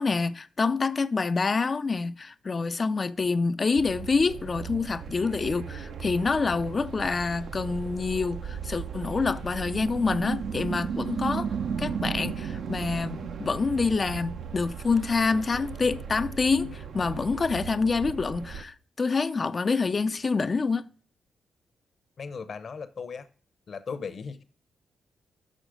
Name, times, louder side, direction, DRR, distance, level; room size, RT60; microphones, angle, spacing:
voice 1, 0.0-11.5 11.8-20.9, left 4 dB, 40° left, 0.4 m, -27 dB
sound 1, 3.8-18.6, right 7 dB, 70° right, 0.7 m, -36 dB
voice 2, 22.2-23.3 23.7-24.4, left 5 dB, 55° left, 0.8 m, -37 dB
6.4 x 6.3 x 4.9 m
cardioid pair, 75°, 0 cm